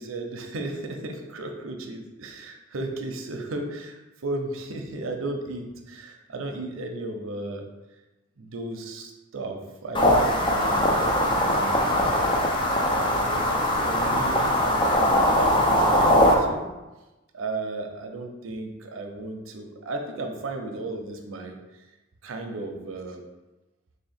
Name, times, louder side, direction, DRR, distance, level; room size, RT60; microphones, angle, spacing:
voice 1, 0.0-7.6 8.4-16.7 17.3-21.8 22.2-23.2, right 2 dB, 85° right, 4 dB, 0.6 m, -35 dB
sound 1, 9.9-16.3, left 1 dB, 25° left, 0.5 m, -21 dB
3.2 x 2.8 x 4.2 m, 1.1 s
head